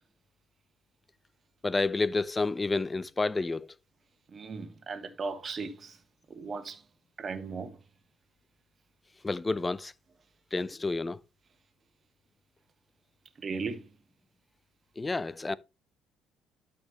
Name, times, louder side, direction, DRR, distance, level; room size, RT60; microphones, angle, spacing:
voice 1, 1.6-3.7 9.2-9.9 10.5-11.2 15.0-15.6, left 3 dB, 20° left, 0.6 m, -29 dB
voice 2, 4.3-6.0 6.3-6.8 7.2-7.8 13.4-13.9, right 4 dB, 40° right, 1.5 m, -37 dB
12.5 x 5.2 x 3.0 m
figure-of-eight pair, 50°, 0 cm